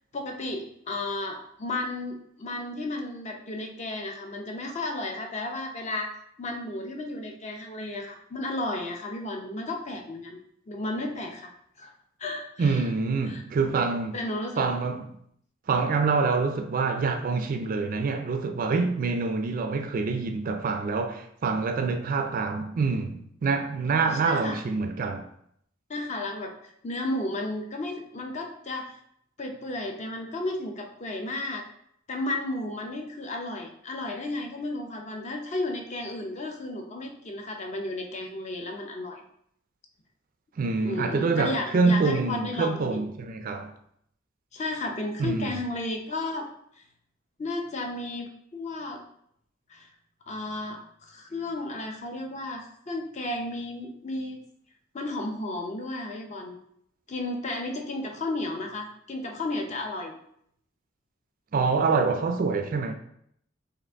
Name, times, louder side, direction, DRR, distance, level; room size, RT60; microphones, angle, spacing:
voice 1, 0.1-6.1 6.4-10.4 10.7-11.5 11.8-11.9 12.2-12.8 13.2-13.4 14.1-14.7 24.2-24.6 25.9-29.0 29.4-31.6 32.1-39.2 40.8-43.0 44.5-46.5 47.4-49.0 49.7-49.9 50.3-54.4 54.9-56.6 57.1-60.2, left 2 dB, 35° left, 0.6 m, -33 dB
voice 2, 12.6-14.2 14.6-15.1 15.7-25.3 40.6-43.7 45.2-45.6 61.5-62.9, right 4 dB, 45° right, 0.4 m, -26 dB
5.1 x 2.5 x 3.5 m
head